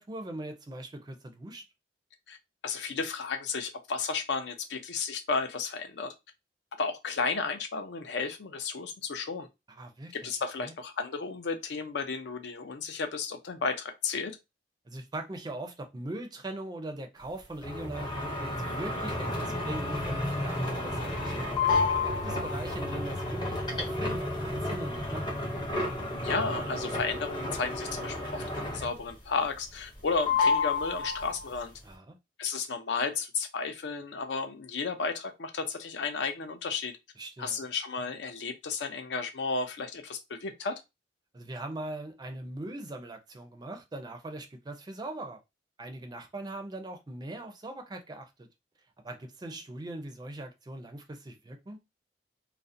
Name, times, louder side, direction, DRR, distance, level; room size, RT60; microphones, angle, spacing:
voice 1, 0.0-1.6 9.8-10.3 10.6-10.7 14.9-21.6 22.2-25.4 31.8-32.2 37.2-37.6 41.3-45.4 45.8-48.5 49.0-51.8, right 1 dB, 25° right, 0.4 m, -41 dB
voice 2, 2.6-6.1 6.8-9.5 10.1-14.3 26.2-31.7 32.4-36.9 37.4-40.8, left 4 dB, 75° left, 0.5 m, -33 dB
sound 1, 17.6-29.1 29.4-30.0 30.3-31.6, left 3 dB, 25° left, 0.6 m, -31 dB
2.5 x 2.0 x 2.5 m
head